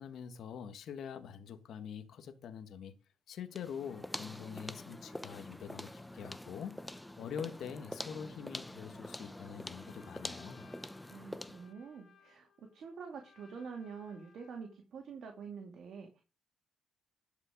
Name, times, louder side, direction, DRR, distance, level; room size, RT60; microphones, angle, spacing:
voice 1, 0.0-2.9 3.3-10.6, left 7 dB, 70° left, 1.5 m, -45 dB
sound 1, 3.5-11.7, left 1 dB, 5° left, 0.7 m, -46 dB
Trumpet, 9.1-14.8, left 6 dB, 45° left, 2.5 m, -65 dB
voice 2, 11.0-16.2, right 5 dB, 65° right, 2.5 m, -47 dB
12.0 x 5.5 x 5.3 m
cardioid pair, 90°, 0 cm